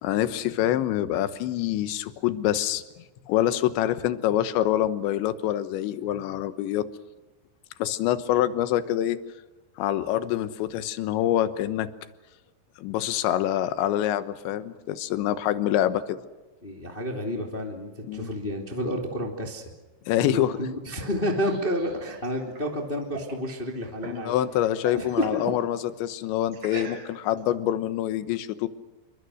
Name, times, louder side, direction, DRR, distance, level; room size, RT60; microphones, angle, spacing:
voice 1, 0.0-2.8 3.3-6.9 7.8-9.2 9.8-11.9 12.8-16.2 18.1-18.3 20.1-20.6 24.1-28.7, left 12 dB, 75° left, 12 dB, 3.4 m, -26 dB
voice 2, 16.6-19.6 20.2-24.3 24.9-25.4, equal, 15° left, 2 dB, 2.0 m, -30 dB
sound 1, 20.9-24.3 24.6-25.7 26.5-27.4, right 4 dB, 45° right, 6.5 m, -41 dB
28.5 x 24.0 x 6.5 m, 1.2 s
omnidirectional pair, 5.4 m